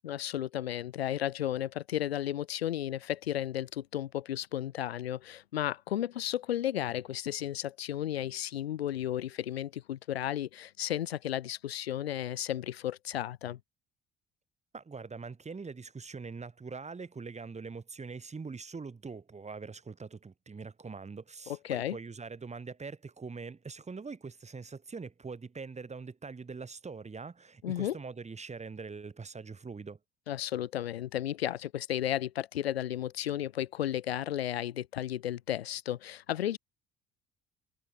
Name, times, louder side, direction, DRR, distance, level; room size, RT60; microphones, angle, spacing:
voice 1, 0.0-13.6 21.5-22.0 27.6-28.0 30.3-36.6, left 12 dB, 85° left, 0.5 m, -33 dB
voice 2, 14.7-30.0, right 4 dB, 20° right, 2.8 m, -43 dB
figure-of-eight pair, 55°, 30 cm